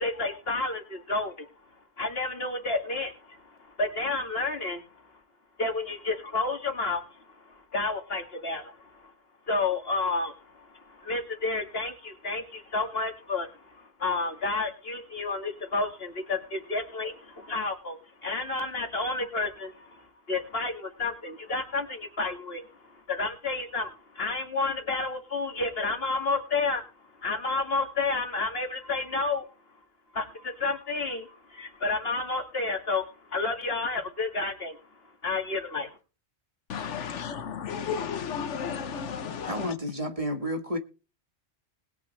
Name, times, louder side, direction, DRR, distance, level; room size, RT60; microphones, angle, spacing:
voice 1, 0.0-1.5 2.0-3.4 3.8-4.8 5.6-7.1 7.7-8.9 9.5-26.8 27.2-29.5 30.1-34.8 35.2-36.0, left 3 dB, 55° left, 2.5 m, -30 dB
voice 2, 36.7-39.7, left 7 dB, 85° left, 1.3 m, -33 dB
voice 3, 39.4-40.8, equal, 30° right, 1.5 m, -31 dB
20.5 x 8.6 x 3.3 m
omnidirectional pair, 1.2 m